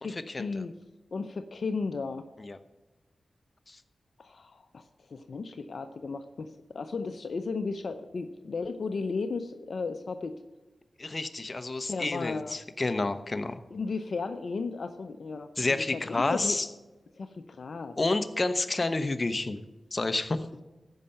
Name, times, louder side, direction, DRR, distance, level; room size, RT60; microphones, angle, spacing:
voice 1, 0.0-0.7 1.1-2.2 4.2-10.4 11.9-12.5 13.7-16.6 17.2-18.0, left 4 dB, 70° left, 9 dB, 0.6 m, -35 dB
voice 2, 11.0-13.6 15.6-16.7 18.0-19.6 19.9-20.5, left 2 dB, 40° left, 11 dB, 0.9 m, -29 dB
14.5 x 5.6 x 7.7 m, 1.1 s
cardioid pair, 40°, 0 cm